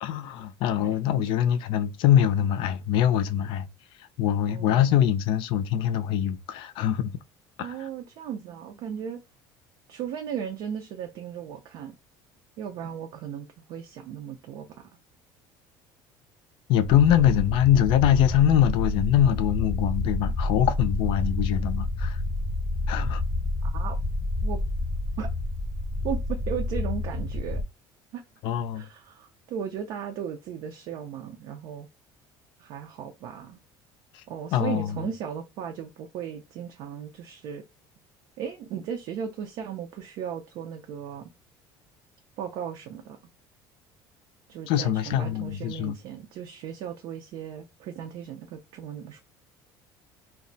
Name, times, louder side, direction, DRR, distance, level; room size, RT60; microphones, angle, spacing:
voice 1, 0.0-3.7 4.2-7.2 7.6-7.7 16.7-22.2 22.9-23.2 28.4-28.9 34.1-34.2 34.5-35.0 44.7-46.0, left 10 dB, 60° left, 0.4 m, -23 dB
voice 2, 4.5-4.9 7.6-9.2 9.9-12.0 12.6-14.9 17.1-17.3 23.6-24.0 24.4-24.6 25.2-25.3 26.0-27.6 28.1-28.2 28.7-31.9 32.6-33.6 34.3-37.6 38.4-41.3 42.4-43.2 44.5-49.2, right 8 dB, 60° right, 0.5 m, -36 dB
sound 1, 16.8-27.6, left 2 dB, 15° left, 0.8 m, -29 dB
2.3 x 2.0 x 3.8 m
cardioid pair, 140°, 9 cm